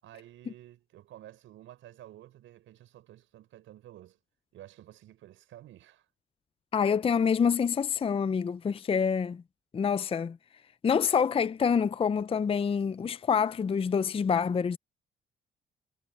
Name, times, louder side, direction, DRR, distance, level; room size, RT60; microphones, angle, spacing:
voice 1, 0.0-4.2 4.5-6.1, right 13 dB, 85° right, 5.7 m, -51 dB
voice 2, 6.7-9.4 9.7-10.4 10.8-14.8, left 6 dB, 30° left, 0.5 m, -26 dB
cardioid pair, 90°, 20 cm